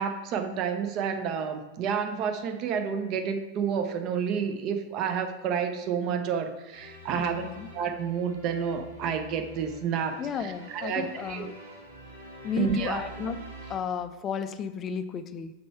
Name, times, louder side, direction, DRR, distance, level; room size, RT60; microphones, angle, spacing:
voice 1, 0.0-7.4 7.7-11.5 12.6-13.1, right 7 dB, 40° right, 7 dB, 0.7 m, -30 dB
sound 1, 6.7-13.8, equal, 80° right, 2.0 m, -46 dB
voice 2, 7.2-7.6 10.2-11.5 12.4-13.4 13.7-15.5, left 6 dB, 25° left, 12 dB, 0.4 m, -33 dB
5.3 x 4.4 x 5.6 m, 1.1 s
figure-of-eight pair, 90°, 0 cm